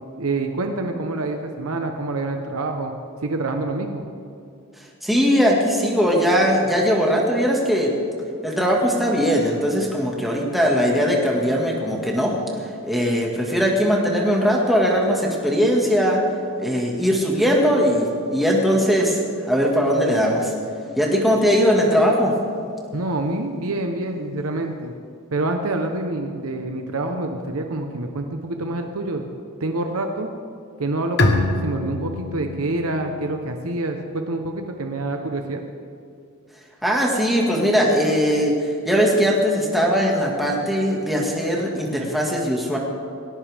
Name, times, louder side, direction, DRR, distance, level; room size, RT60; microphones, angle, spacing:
voice 1, 0.2-2.9 3.2-4.0 22.9-24.9 25.3-29.3 29.6-30.3 30.8-35.6, right 2 dB, 80° right, 4 dB, 1.0 m, -27 dB
voice 2, 4.8-7.9 8.4-16.2 16.6-20.5 21.0-22.4 36.8-42.8, equal, ahead, -2 dB, 1.8 m, -20 dB
Bowed string instrument, 31.2-34.7, left 2 dB, 50° left, 1.3 m, -26 dB
19.0 x 17.5 x 3.5 m, 2.4 s
head